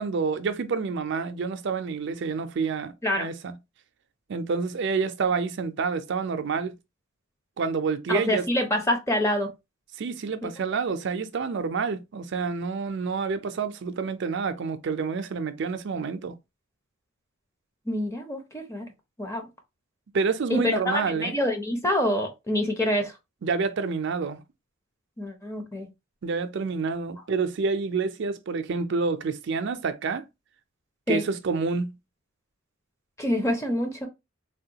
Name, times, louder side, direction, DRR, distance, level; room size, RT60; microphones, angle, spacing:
voice 1, 0.0-3.6 4.3-6.8 7.6-8.5 10.0-16.4 20.1-21.4 23.4-24.4 26.2-30.2 31.1-32.0, right 5 dB, 55° right, 0.4 m, -28 dB
voice 2, 8.1-9.5 10.4-10.5 17.9-18.9 19.2-19.5 20.5-23.1 25.2-25.9 31.1-31.2 33.2-34.1, left 1 dB, 15° left, 0.6 m, -26 dB
3.5 x 2.2 x 2.8 m
head